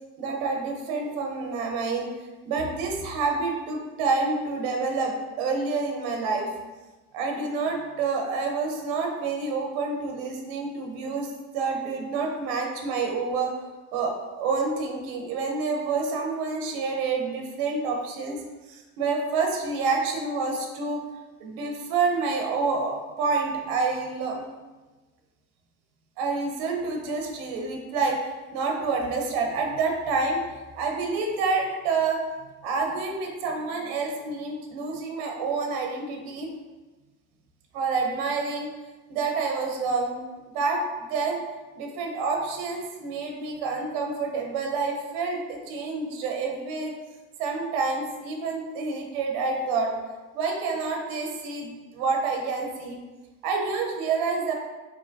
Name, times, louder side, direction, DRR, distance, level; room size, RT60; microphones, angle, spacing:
voice 1, 0.2-2.1 2.5-6.5 7.1-13.5 13.9-18.4 18.7-21.0 21.4-24.5 26.2-28.2 28.5-32.2 32.6-36.5 37.7-38.7 39.1-41.4 41.8-46.9 47.4-49.9 50.3-53.0 53.4-54.5, right 4 dB, 85° right, 2 dB, 0.9 m, -28 dB
4.8 x 2.8 x 2.6 m, 1.2 s
cardioid pair, 165°, 36 cm